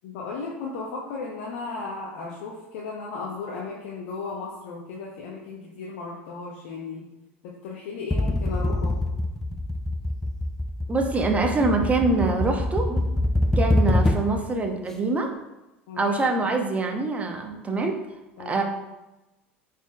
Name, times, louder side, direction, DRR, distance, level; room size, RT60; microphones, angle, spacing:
voice 1, 0.0-7.1 7.4-8.9 15.9-16.1 18.4-18.6, left 4 dB, 60° left, -3 dB, 1.0 m, -35 dB
sound 1, 8.1-14.5, left 1 dB, 5° left, 0.4 m, -25 dB
voice 2, 10.9-13.0 13.6-15.3 16.0-18.0 18.4-18.6, right 3 dB, 20° right, 3 dB, 1.1 m, -24 dB
9.2 x 4.3 x 2.5 m, 1.0 s
figure-of-eight pair, 75°, 7 cm